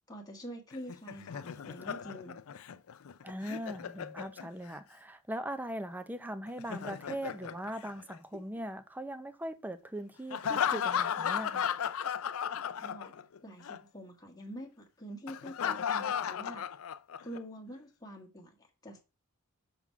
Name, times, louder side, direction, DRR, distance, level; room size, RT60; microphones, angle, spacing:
voice 1, 0.1-2.4 12.8-13.1 13.4-16.7 17.2-19.0, equal, 15° left, 1.4 m, -46 dB
Laughter, 0.7-4.8 6.5-8.6 10.3-13.4 13.6-13.8 15.3-17.4, left 8 dB, 65° left, 0.4 m, -35 dB
voice 2, 3.2-11.7, right 1 dB, 10° right, 0.6 m, -40 dB
6.0 x 3.8 x 5.7 m
head